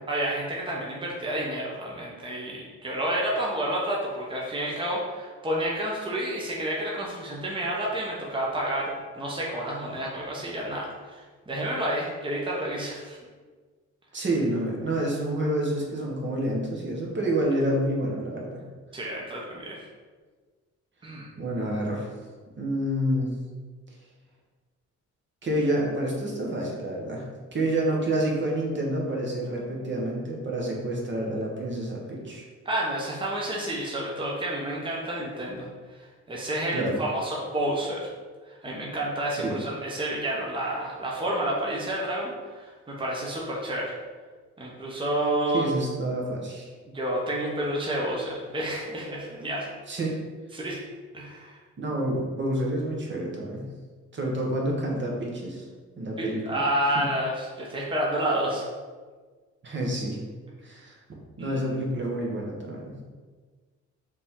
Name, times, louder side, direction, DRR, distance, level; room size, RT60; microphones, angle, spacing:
voice 1, 0.1-13.2 18.9-19.8 21.0-21.3 32.6-35.7 35.9-38.0 38.5-43.9 44.6-45.7 46.9-49.7 50.5-50.8 51.1-51.6 56.2-58.6 61.4-61.6, right 1 dB, 15° right, -3 dB, 0.9 m, -30 dB
voice 2, 14.1-18.6 21.4-22.1 22.6-23.3 25.4-27.3 27.5-32.4 36.7-37.0 39.3-39.6 45.5-46.7 49.9-50.2 51.8-53.6 54.1-55.6 56.0-56.6 56.9-57.1 59.6-60.2 60.6-61.0 61.4-63.0, right 1 dB, 40° right, -2 dB, 1.1 m, -28 dB
5.0 x 2.9 x 3.6 m, 1.4 s
cardioid pair, 90°, 30 cm